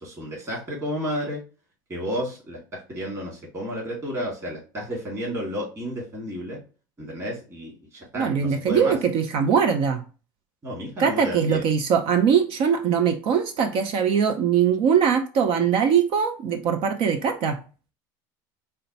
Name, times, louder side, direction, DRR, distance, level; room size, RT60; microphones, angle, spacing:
voice 1, 0.0-1.4 1.9-6.6 7.0-9.0 10.6-11.6, equal, 25° right, 2.1 m, -32 dB
voice 2, 8.1-10.0 11.0-17.6, right 7 dB, 55° right, 0.6 m, -21 dB
5.0 x 2.2 x 2.7 m
supercardioid pair, 100°, 11 cm